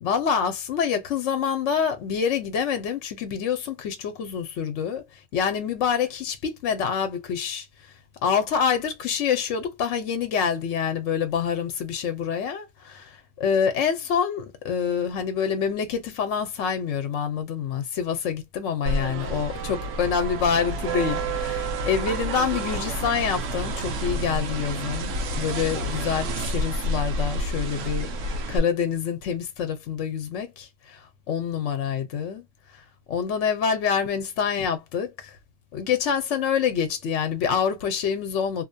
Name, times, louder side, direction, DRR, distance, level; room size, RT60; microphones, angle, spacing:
voice 1, 0.0-5.0 5.3-7.7 8.2-32.5 32.7-35.4 35.7-38.6, left 7 dB, 70° left, 1.0 m, -26 dB
sound 1, 18.9-28.6, right 1 dB, 80° right, 1.0 m, -29 dB
2.7 x 2.2 x 2.5 m
omnidirectional pair, 1.3 m